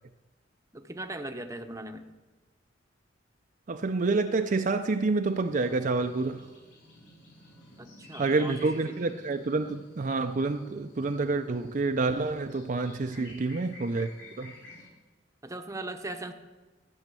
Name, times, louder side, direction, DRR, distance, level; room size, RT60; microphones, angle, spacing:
voice 1, 0.7-2.0 7.8-8.6 8.9-9.0 13.1-13.3 15.4-16.3, right 2 dB, 15° right, 0.8 m, -39 dB
voice 2, 3.7-6.5 8.2-14.1 14.4-14.5, right 3 dB, 45° right, 0.5 m, -28 dB
sound 1, 5.2-14.9, left 2 dB, 80° left, 5.0 m, -52 dB
13.5 x 6.4 x 8.4 m
head